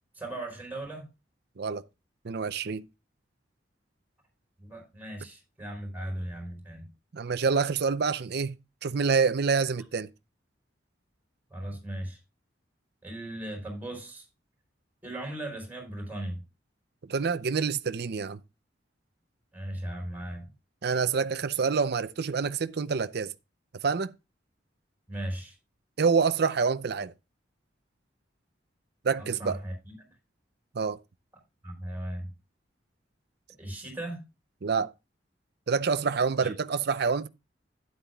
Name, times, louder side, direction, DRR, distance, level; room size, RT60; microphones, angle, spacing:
voice 1, 0.1-1.1 4.6-6.9 11.5-12.2 13.0-14.2 15.0-16.4 19.5-20.5 25.1-25.6 29.2-30.1 31.6-32.3 33.6-34.2 36.4-36.5, right 1 dB, 10° right, 4.7 m, -37 dB
voice 2, 2.2-2.8 7.1-8.6 8.8-10.1 17.1-18.4 20.8-23.3 23.8-24.1 26.0-27.1 29.0-29.6 30.7-31.0 34.6-34.9 35.7-37.3, right 5 dB, 60° right, 0.5 m, -27 dB
12.0 x 9.5 x 2.3 m
head